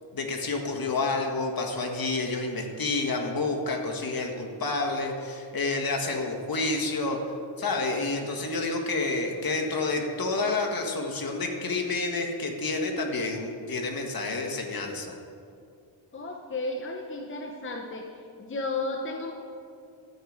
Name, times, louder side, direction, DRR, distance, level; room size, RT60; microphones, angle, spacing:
voice 1, 0.1-15.1, left 3 dB, 50° left, 2 dB, 1.6 m, -29 dB
voice 2, 16.1-18.1 18.4-19.3, left 2 dB, 25° left, 1 dB, 0.9 m, -33 dB
12.5 x 4.8 x 8.7 m, 2.4 s
cardioid pair, 110°, 47 cm